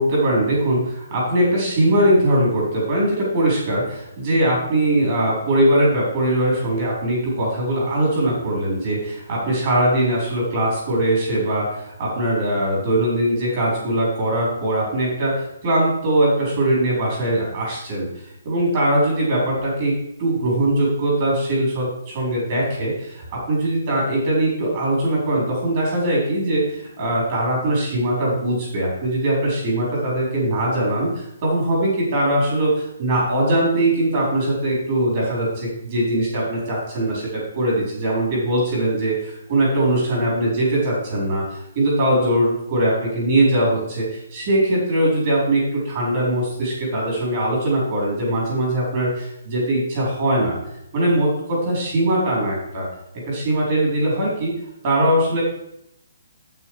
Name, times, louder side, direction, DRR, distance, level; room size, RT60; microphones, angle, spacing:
voice 1, 0.0-18.1 18.4-50.6 50.9-52.9 53.3-54.5 54.8-55.4, right 1 dB, 30° right, -4 dB, 4.4 m, -21 dB
8.8 x 8.4 x 4.9 m, 0.80 s
hypercardioid pair, 180°, 0 cm